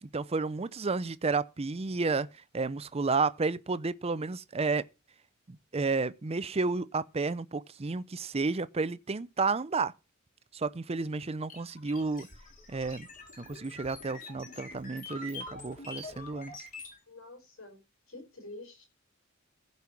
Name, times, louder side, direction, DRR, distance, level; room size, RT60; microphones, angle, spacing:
voice 1, 0.0-2.3 2.5-4.9 5.5-9.9 10.5-12.3 12.7-13.1 13.4-16.5, right 4 dB, 30° right, 0.5 m, -31 dB
sound 1, 11.5-17.0, left 2 dB, 40° left, 3.4 m, -45 dB
voice 2, 17.1-18.8, left 2 dB, 75° left, 5.0 m, -48 dB
15.5 x 5.4 x 6.1 m
head